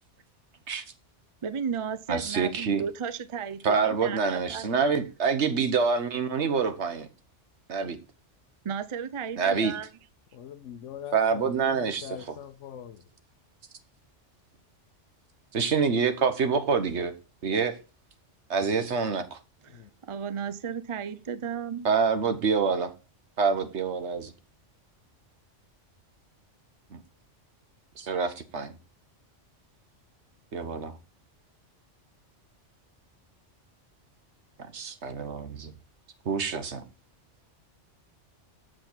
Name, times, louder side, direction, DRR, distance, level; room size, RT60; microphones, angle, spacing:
voice 1, 1.4-4.7 8.6-9.9 19.6-21.9, right 7 dB, 35° right, 0.5 m, -34 dB
voice 2, 2.1-2.8 3.6-7.1 7.7-8.0 9.4-9.7 11.1-12.4 15.5-17.1 17.4-17.8 18.5-19.4 21.8-22.9 23.4-24.3 26.9-27.0 28.0-28.8 30.5-30.9 34.7-35.7 36.2-36.8, right 5 dB, 65° right, 1.4 m, -26 dB
voice 3, 10.3-13.0 18.8-18.9 19.7-19.9, left 9 dB, 80° left, 1.0 m, -42 dB
7.8 x 7.6 x 4.4 m
omnidirectional pair, 1.2 m